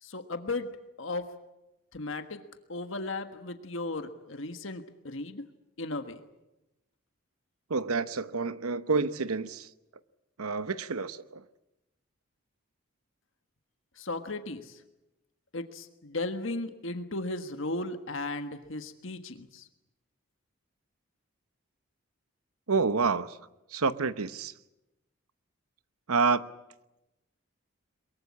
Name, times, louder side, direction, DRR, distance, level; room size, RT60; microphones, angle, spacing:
voice 1, 0.0-0.7 1.0-1.3 1.9-2.4 2.7-5.4 5.8-6.2 14.0-14.8 15.5-19.7, left 2 dB, 65° left, 1.5 m, -36 dB
voice 2, 7.7-9.7 10.4-11.4 22.7-23.4 23.7-24.5 26.1-26.4, right 4 dB, 90° right, 0.9 m, -28 dB
23.0 x 22.5 x 8.6 m
head